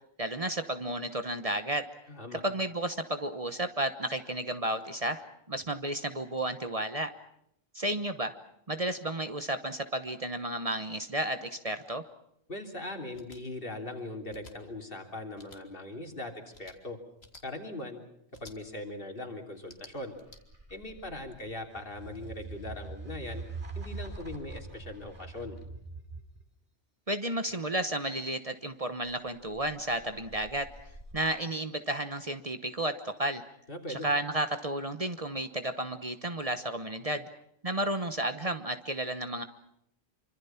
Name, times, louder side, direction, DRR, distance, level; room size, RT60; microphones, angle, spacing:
voice 1, 0.2-1.8 2.4-5.2 5.5-7.1 7.7-8.3 8.7-12.0 27.1-30.7 31.1-33.4 33.9-37.3 37.6-39.4, right 1 dB, 35° right, 9 dB, 1.2 m, -32 dB
voice 2, 2.1-2.4 12.5-17.0 17.4-18.0 18.4-20.1 20.7-23.4 23.7-25.6 33.7-34.1, left 1 dB, 55° left, 3 dB, 3.4 m, -40 dB
sound 1, 13.1-13.4 14.3-14.5 15.3-15.6 16.5-16.8 17.2-17.4 18.3-18.6 19.6-20.4, left 3 dB, 70° left, 2.5 m, -52 dB
sound 2, 19.9-26.4 29.0-31.1, right 3 dB, 50° right, 3.9 m, -44 dB
26.0 x 25.0 x 5.8 m, 0.75 s
omnidirectional pair, 1.1 m